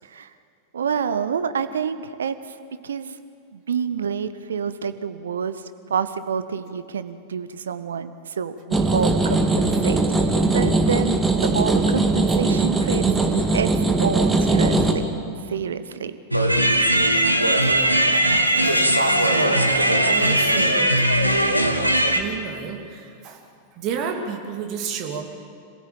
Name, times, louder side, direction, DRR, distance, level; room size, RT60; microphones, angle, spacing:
voice 1, 0.7-2.5 2.8-3.2 3.5-5.6 5.9-10.0 10.5-11.2 11.5-13.0 13.5-13.7 14.0-15.0 15.5-16.2, right 7 dB, 65° right, 12 dB, 1.1 m, -27 dB
sound 1, 8.7-14.9, right 2 dB, 10° right, 2.1 m, -20 dB
sound 2, 16.3-22.2, right 1 dB, 85° right, 1.5 m, -19 dB
voice 2, 17.4-17.7 18.1-18.2 18.6-20.9 22.1-25.3, right 6 dB, 40° right, 3 dB, 2.8 m, -32 dB
26.0 x 16.0 x 8.8 m, 2.3 s
figure-of-eight pair, 90°, 0 cm